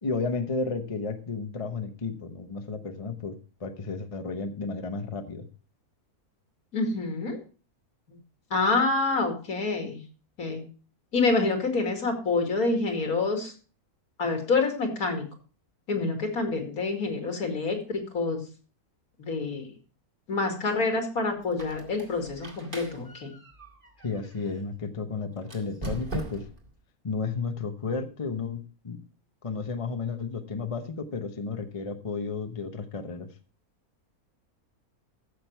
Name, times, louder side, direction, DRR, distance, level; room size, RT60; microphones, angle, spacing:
voice 1, 0.0-5.5 24.0-26.5 27.0-29.0 29.4-33.3, left 4 dB, 25° left, 8 dB, 0.8 m, -33 dB
voice 2, 6.7-7.4 8.5-10.0 10.4-10.6 11.1-13.5 14.2-15.2 15.9-18.4 19.2-19.6 20.3-23.3, left 3 dB, 75° left, 4 dB, 2.8 m, -27 dB
Squeak, 21.4-24.6 25.4-26.7, right 2 dB, 35° right, 2.3 m, -40 dB
14.5 x 6.6 x 4.5 m, 0.37 s
omnidirectional pair, 1.6 m